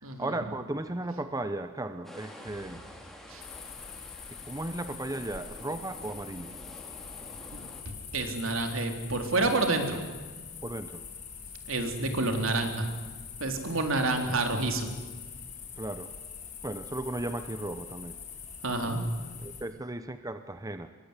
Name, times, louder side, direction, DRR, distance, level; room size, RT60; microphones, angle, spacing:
voice 1, 0.0-2.8 4.3-6.6 10.6-11.0 15.8-16.1 16.6-18.2 19.4-20.9, right 1 dB, 15° right, 9 dB, 0.9 m, -36 dB
sound 1, 2.0-7.8, equal, ahead, 4.1 m, -49 dB
sound 2, 3.4-19.6, left 6 dB, 35° left, 7.0 m, -44 dB
voice 2, 7.5-10.0 11.7-12.9 13.4-14.9 18.6-19.0, right 2 dB, 65° right, 5 dB, 3.8 m, -29 dB
24.0 x 22.5 x 9.9 m, 1.4 s
head